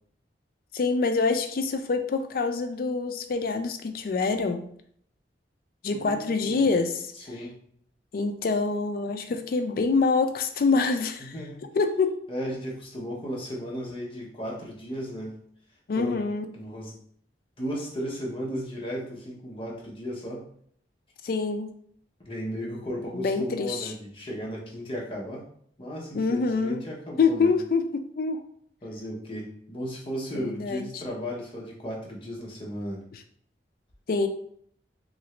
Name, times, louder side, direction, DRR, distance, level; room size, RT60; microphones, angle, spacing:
voice 1, 0.7-4.7 5.8-7.1 8.1-11.3 11.7-12.2 15.9-16.5 21.2-21.7 23.1-23.9 26.1-26.8 27.2-28.4 30.3-31.0 34.1-34.3, left 4 dB, 55° left, 7 dB, 0.3 m, -26 dB
voice 2, 5.9-6.7 7.2-7.6 11.2-11.6 12.3-15.4 16.0-16.2 16.5-17.0 17.6-20.5 22.3-25.4 25.8-27.6 28.8-33.1, equal, 30° left, -3 dB, 0.8 m, -35 dB
2.8 x 2.5 x 3.2 m, 0.63 s
head